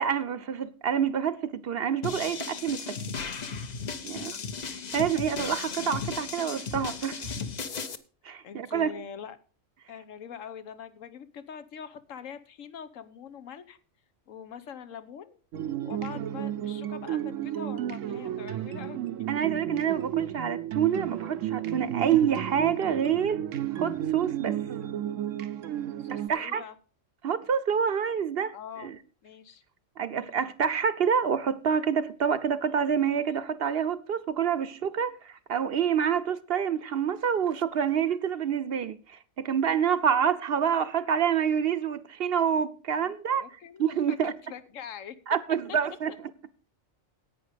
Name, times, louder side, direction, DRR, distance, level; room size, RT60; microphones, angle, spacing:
voice 1, 0.0-3.0 4.0-4.4 4.7-7.3 8.2-8.9 19.3-23.4 23.7-24.6 26.1-26.6 27.2-28.5 28.8-29.0 30.0-43.4 43.8-44.3 45.3-46.1, right 8 dB, 60° right, 0.8 m, -27 dB
sound 1, 2.0-7.9, left 5 dB, 40° left, 0.7 m, -35 dB
voice 2, 4.1-4.4 8.4-9.4 9.9-13.8 14.3-15.4 15.8-19.0 26.0-26.8 28.5-28.9 29.2-29.6 42.9-43.1 43.4-45.2, left 7 dB, 85° left, 1.2 m, -43 dB
sound 2, 15.5-26.3, right 11 dB, 90° right, 1.1 m, -32 dB
10.5 x 8.7 x 5.0 m
omnidirectional pair, 1.3 m